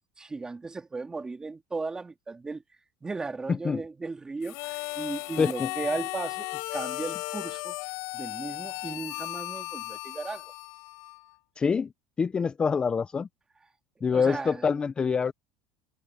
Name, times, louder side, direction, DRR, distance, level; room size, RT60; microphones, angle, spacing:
voice 1, 0.2-2.6 3.0-7.8 8.1-10.5 14.1-14.8, right 3 dB, 15° right, 2.8 m, -36 dB
Harmonica, 4.4-11.3, left 26 dB, 65° left, 6.4 m, -36 dB
voice 2, 5.4-5.7 11.6-11.9 12.2-13.3 14.0-15.3, left 5 dB, 20° left, 0.4 m, -25 dB
cardioid pair, 150°, 5 cm